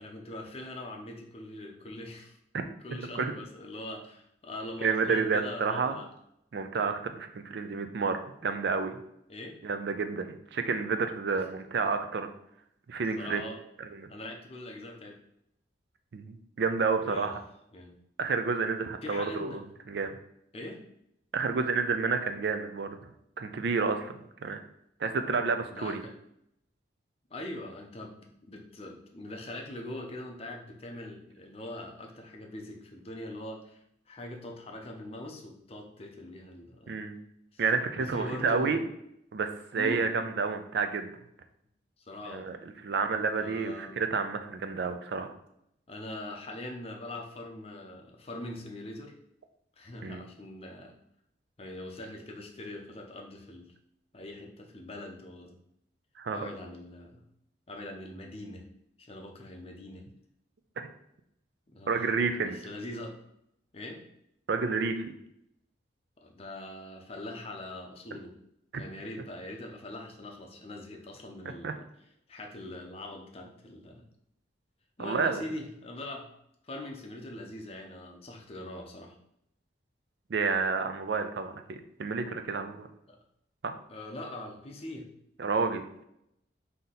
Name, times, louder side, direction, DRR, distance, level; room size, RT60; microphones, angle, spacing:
voice 1, 0.0-2.4 2.8-6.1 9.3-9.6 13.2-13.6 14.1-15.2 17.0-17.3 17.7-18.0 19.0-19.6 20.5-20.8 25.7-26.1 27.3-37.0 37.5-37.6 38.0-38.8 39.7-40.1 42.0-42.5 43.3-44.0 45.9-49.1 49.8-50.9 51.6-53.7 54.1-55.6 56.3-57.2 57.7-58.6 59.0-60.0 61.7-62.1 62.4-63.2 63.7-64.0 66.2-68.3 68.7-71.8 72.3-74.1 75.0-76.3 76.6-79.2 83.1-83.2 83.9-85.1, left 1 dB, 30° left, 2 dB, 0.5 m, -42 dB
voice 2, 4.8-6.0 6.5-9.0 9.6-12.3 12.9-13.4 13.8-14.1 16.1-17.4 18.2-20.2 21.3-23.0 23.4-24.6 25.0-26.0 36.9-37.2 37.6-38.8 39.3-41.1 42.3-42.6 42.8-45.3 50.0-50.2 56.2-56.4 61.9-62.6 64.5-65.0 71.6-71.7 75.0-75.4 80.3-82.9 83.6-83.7 85.4-85.8, right 4 dB, 65° right, 7 dB, 0.4 m, -30 dB
3.8 x 2.8 x 4.0 m, 0.76 s
head